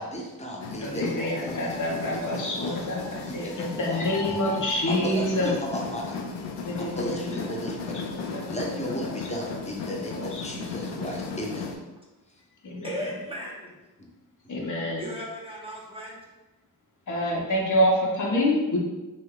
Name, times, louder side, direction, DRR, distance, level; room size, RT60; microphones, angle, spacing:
voice 1, 0.0-4.4 4.6-6.2 6.8-8.1 8.4-11.7 14.0-14.1 14.4-14.5, equal, 15° left, -1 dB, 0.8 m, -35 dB
sound 1, 0.6-11.8, left 4 dB, 85° left, 0.5 m, -36 dB
voice 2, 0.8-5.5 6.7-7.3 7.9-8.4 12.6-13.0 14.5-15.1 17.1-18.8, equal, 45° left, -3 dB, 0.8 m, -27 dB
voice 3, 12.8-13.8 15.0-16.2, equal, 15° right, -4 dB, 0.7 m, -36 dB
2.6 x 2.2 x 3.6 m, 1.1 s
supercardioid pair, 50°, 42 cm